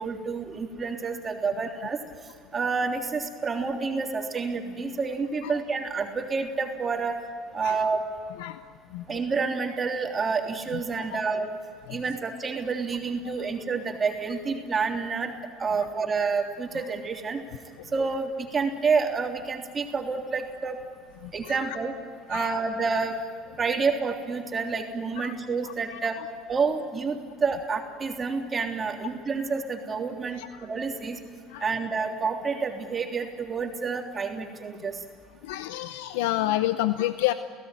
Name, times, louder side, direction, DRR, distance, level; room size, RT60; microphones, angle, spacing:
voice 1, 0.0-2.0 2.5-7.1 7.5-8.0 9.1-11.5 11.9-15.3 15.6-17.4 17.9-20.8 21.3-21.9 22.3-23.2 23.6-26.2 26.5-31.2 31.6-35.0, right 4 dB, 30° right, 2 dB, 3.3 m, -28 dB
voice 2, 8.9-9.3 10.7-11.2 11.9-12.0 13.2-13.3 15.8-15.9 17.8-17.9 21.2-21.8 22.3-22.5 25.2-25.3 25.6-26.3 30.3-30.7 31.5-31.7 35.4-37.3, left 15 dB, 85° left, 11 dB, 0.7 m, -30 dB
30.0 x 17.0 x 9.2 m, 2.3 s
supercardioid pair, 90°, 0 cm